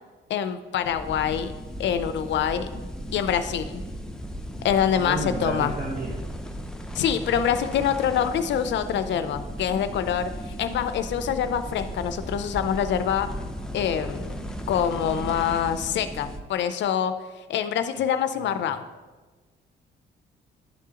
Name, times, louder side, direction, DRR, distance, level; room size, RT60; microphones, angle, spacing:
voice 1, 0.3-1.5 1.8-2.8 3.1-3.8 4.6-5.7 6.9-13.3 13.7-14.4 14.7-17.1 17.5-18.8, left 8 dB, 65° left, 10 dB, 0.4 m, -25 dB
sound 1, 0.8-16.4, equal, 5° left, 0.5 m, -36 dB
voice 2, 4.9-6.3 18.3-18.7, right 2 dB, 45° right, -2 dB, 1.0 m, -32 dB
10.5 x 3.6 x 2.8 m, 1.3 s
cardioid pair, 90°, 20 cm